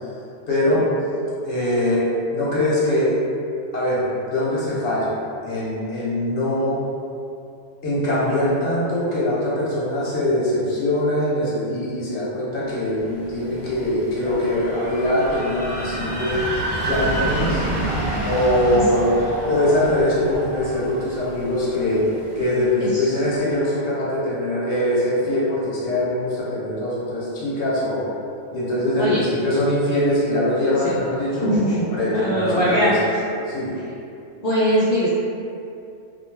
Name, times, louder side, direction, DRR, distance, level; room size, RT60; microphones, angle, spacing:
voice 1, 0.5-0.9 1.4-3.2 3.7-5.1 5.4-6.8 7.8-16.4 16.8-17.6 18.2-19.1 19.5-22.1 22.4-28.1 28.5-33.0 33.5-33.7, left 1 dB, 65° left, -7 dB, 1.1 m, -22 dB
sound 1, 13.0-22.8, right 1 dB, 60° right, 0.4 m, -29 dB
voice 2, 31.4-31.9 32.1-32.9 34.4-35.1, equal, 80° left, -9 dB, 0.3 m, -21 dB
2.5 x 2.1 x 3.3 m, 2.6 s
omnidirectional pair, 1.3 m